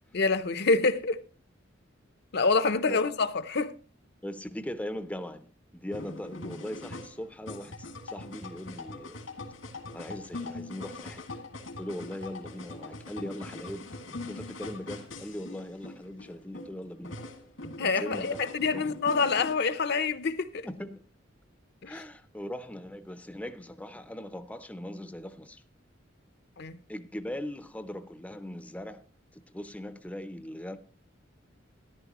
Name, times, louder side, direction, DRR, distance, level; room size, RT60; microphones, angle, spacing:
voice 1, 0.1-1.2 2.3-3.7 17.8-20.7 21.8-21.9 26.6-26.8, left 4 dB, 60° left, 0.7 m, -26 dB
voice 2, 4.2-9.2 9.9-11.2 11.8-17.1 17.8-18.3 18.7-19.0 20.6-21.0 21.8-25.6 26.9-29.0 29.3-30.8, left 1 dB, 5° left, 0.6 m, -40 dB
sound 1, 5.9-19.5, left 2 dB, 85° left, 2.2 m, -42 dB
13.5 x 11.0 x 3.0 m
head